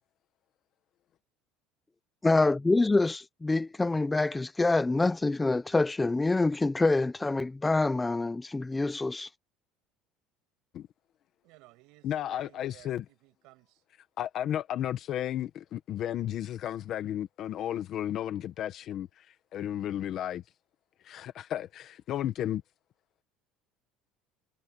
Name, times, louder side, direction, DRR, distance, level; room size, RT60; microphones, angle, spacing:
voice 1, 2.2-9.3, left 3 dB, 10° left, 0.5 m, -26 dB
voice 2, 11.4-13.8, right 23 dB, 60° right, 6.1 m, -57 dB
voice 3, 12.0-13.0 14.2-20.4 21.0-22.6, left 11 dB, 35° left, 1.0 m, -33 dB
cardioid pair, 175°, 0 cm